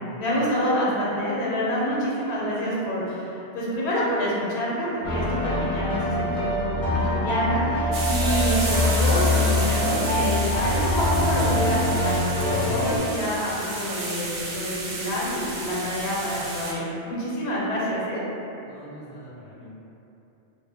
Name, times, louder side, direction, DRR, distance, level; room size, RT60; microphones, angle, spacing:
voice 1, 0.2-18.2, equal, 80° left, -6 dB, 0.9 m, -27 dB
sound 1, 5.0-13.0, left 1 dB, 45° left, 0.6 m, -24 dB
sound 2, 7.9-16.7, right 2 dB, 65° right, 0.7 m, -32 dB
voice 2, 18.7-19.7, right 1 dB, 30° right, -13 dB, 0.5 m, -44 dB
2.2 x 2.1 x 3.3 m, 2.9 s
omnidirectional pair, 1.1 m